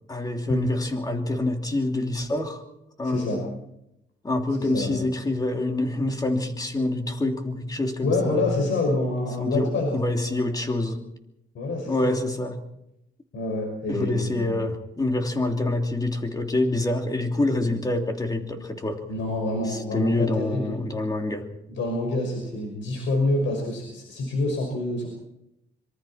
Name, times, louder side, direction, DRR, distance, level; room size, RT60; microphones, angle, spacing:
voice 1, 0.1-2.6 3.0-3.5 4.2-8.6 9.4-11.0 11.8-12.6 13.9-19.0 19.6-21.5, left 2 dB, 20° left, 4 dB, 3.0 m, -26 dB
voice 2, 3.0-3.4 4.6-5.0 8.0-10.0 10.2-10.4 11.5-12.2 13.3-14.6 19.1-20.7 21.7-25.1, left 2 dB, 75° left, 0 dB, 5.8 m, -27 dB
26.0 x 24.0 x 4.4 m, 0.84 s
cardioid pair, 125°, 20 cm